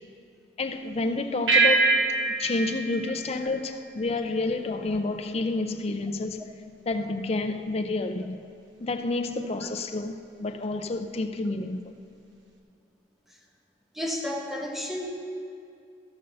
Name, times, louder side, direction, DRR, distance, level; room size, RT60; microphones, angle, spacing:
voice 1, 0.6-2.0 2.4-6.5 6.9-8.4 8.8-11.9, left 2 dB, 35° left, 0.5 m, -29 dB
sound 1, 1.5-4.2, right 3 dB, 85° right, 1.1 m, -25 dB
voice 2, 13.9-15.1, left 1 dB, ahead, 1.0 m, -31 dB
14.5 x 5.5 x 6.6 m
head